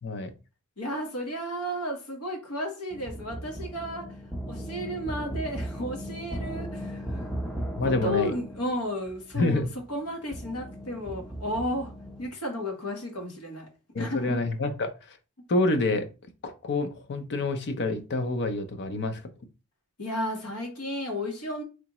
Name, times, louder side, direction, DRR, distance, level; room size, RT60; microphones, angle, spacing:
voice 1, 0.0-0.3 7.8-8.3 9.3-9.7 13.9-15.2 15.5-16.1 16.4-19.2, left 2 dB, 50° left, 0.6 m, -27 dB
voice 2, 0.8-4.1 4.5-7.3 7.8-11.9 12.2-13.7 14.0-14.4 15.4-15.5 20.0-21.6, equal, 85° left, 1.3 m, -33 dB
sound 1, 2.9-12.3, equal, ahead, 0.5 m, -37 dB
3.8 x 3.3 x 3.0 m
head